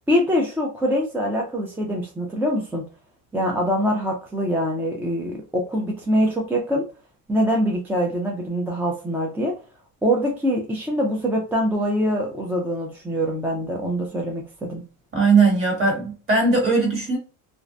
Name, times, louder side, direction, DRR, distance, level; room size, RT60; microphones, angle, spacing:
voice 1, 0.1-2.8 3.3-6.9 7.3-9.5 10.0-14.8, equal, 5° right, 0.3 m, -24 dB
voice 2, 15.1-17.2, right 4 dB, 30° right, 1.4 m, -19 dB
2.5 x 2.0 x 2.5 m
cardioid pair, 125°, 39 cm